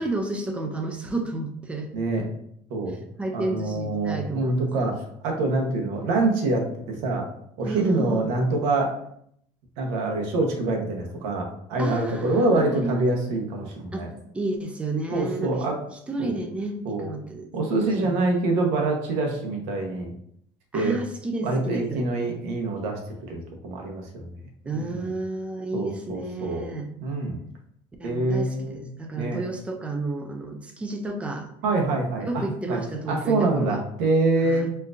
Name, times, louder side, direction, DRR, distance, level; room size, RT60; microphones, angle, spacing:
voice 1, 0.0-1.9 3.2-4.7 7.6-8.3 11.8-13.0 13.9-14.1 14.3-15.6 16.1-17.5 18.0-18.2 20.7-22.0 24.7-26.9 28.0-31.5 32.3-33.8 34.4-34.7, right 2 dB, 10° right, 3 dB, 0.4 m, -31 dB
voice 2, 1.9-2.3 2.7-3.0 3.3-7.3 7.6-8.9 9.8-14.1 15.1-15.8 16.2-16.4 16.8-17.1 17.5-20.1 20.7-21.0 21.4-24.3 24.7-25.1 25.7-26.7 27.0-27.4 28.0-28.8 29.1-29.4 31.6-34.7, right 2 dB, 70° right, 1 dB, 0.9 m, -25 dB
4.3 x 2.5 x 2.5 m, 0.68 s
cardioid pair, 170°, 13 cm